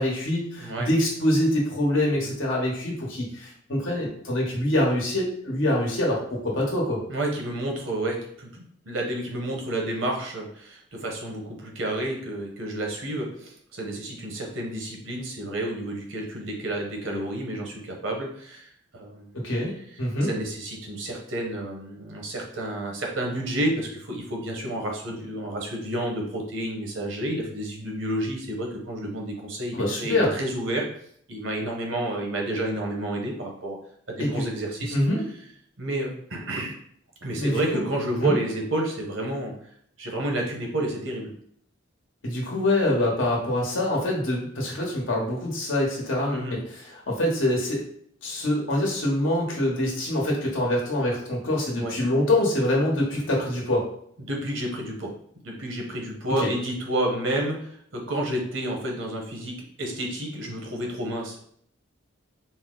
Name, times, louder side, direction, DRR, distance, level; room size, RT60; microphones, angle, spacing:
voice 1, 0.0-7.0 19.3-19.7 20.0-20.3 29.7-30.3 34.2-34.4 34.9-35.2 37.3-37.8 38.2-38.4 42.2-47.8 48.2-53.8 56.4-56.5, left 1 dB, 80° left, -2 dB, 1.1 m, -25 dB
voice 2, 7.1-19.4 20.2-30.8 31.3-33.8 34.1-34.9 35.8-36.7 37.2-39.5 40.0-41.3 46.3-46.6 51.8-51.9 54.2-55.1 55.4-61.4, right 1 dB, 80° right, 1 dB, 1.0 m, -30 dB
4.2 x 2.1 x 3.8 m, 0.66 s
head